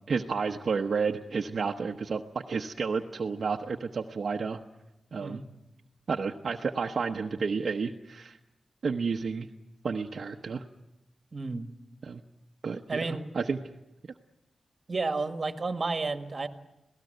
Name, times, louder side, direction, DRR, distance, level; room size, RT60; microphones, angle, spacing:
voice 1, 0.1-4.6 5.1-5.4 6.1-8.4 8.8-9.5 9.8-10.7 12.0-12.2 12.6-13.6, right 5 dB, 55° right, 2 dB, 1.0 m, -31 dB
voice 2, 11.3-11.7 12.9-13.3 14.9-16.5, right 3 dB, 35° right, 7 dB, 1.8 m, -31 dB
27.0 x 18.0 x 8.0 m, 0.97 s
wide cardioid pair, 120°, 0 cm